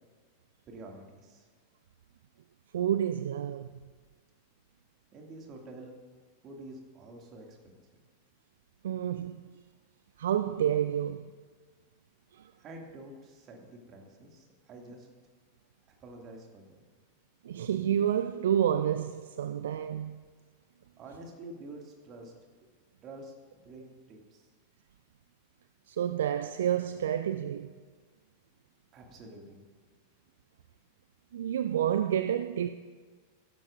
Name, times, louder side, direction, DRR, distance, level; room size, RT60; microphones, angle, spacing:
voice 1, 0.7-1.5 5.1-6.0 6.4-8.0 12.6-15.1 16.0-16.9 21.0-22.3 23.0-24.5 28.9-29.7, right 2 dB, 30° right, 2.3 m, -48 dB
voice 2, 2.7-3.7 8.8-9.4 10.2-11.3 12.3-12.5 17.4-20.2 25.9-27.7 31.3-32.7, right 10 dB, 60° right, 0.4 m, -29 dB
16.0 x 12.5 x 2.6 m
figure-of-eight pair, 90°, 0 cm